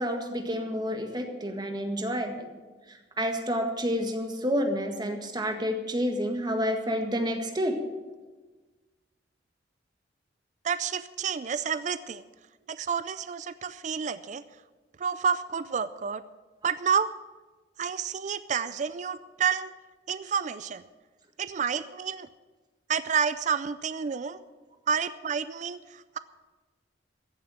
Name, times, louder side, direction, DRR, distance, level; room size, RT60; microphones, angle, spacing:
voice 1, 0.0-2.5 2.9-7.8, equal, 25° right, 4 dB, 1.7 m, -29 dB
voice 2, 10.6-12.2 12.7-14.4 15.0-16.2 16.6-17.1 17.8-19.7 20.1-20.8 21.4-22.3 22.9-24.4 24.9-26.2, right 6 dB, 40° right, 14 dB, 0.4 m, -29 dB
15.0 x 7.1 x 8.9 m, 1.3 s
head